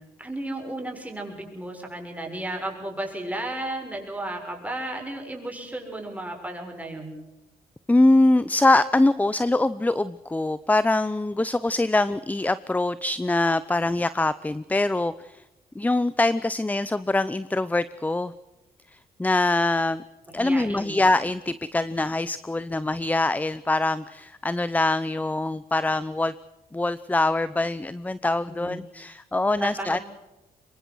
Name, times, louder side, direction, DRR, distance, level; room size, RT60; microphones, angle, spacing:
voice 1, 0.2-7.1 20.3-21.0 28.5-28.8 29.6-30.0, right 1 dB, 10° right, 2 dB, 6.9 m, -34 dB
voice 2, 7.9-15.4 15.8-18.3 19.2-20.0 20.3-26.3 26.7-30.0, left 2 dB, 10° left, 16 dB, 0.7 m, -23 dB
25.0 x 22.5 x 6.3 m, 1.0 s
cardioid pair, 90°, 16 cm